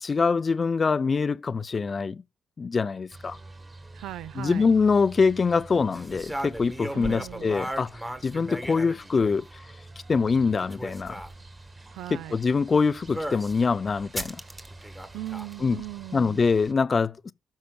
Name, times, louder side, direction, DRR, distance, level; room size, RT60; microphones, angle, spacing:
voice 1, 0.0-2.2 2.6-3.4 4.4-7.9 8.2-9.4 10.1-11.2 12.1-14.4 15.6-15.8 16.1-17.3, left 5 dB, 35° left, 0.4 m, -24 dB
sound 1, 3.1-16.7, right 2 dB, 25° right, 1.8 m, -48 dB
voice 2, 3.9-4.7 6.9-7.6 11.9-12.4 15.1-16.4, right 15 dB, 85° right, 0.4 m, -38 dB
sound 2, 5.9-9.5 10.5-11.3 13.1-13.6 14.2-15.6, right 1 dB, 10° right, 1.2 m, -36 dB
13.0 x 5.6 x 2.2 m
cardioid pair, 90°, 0 cm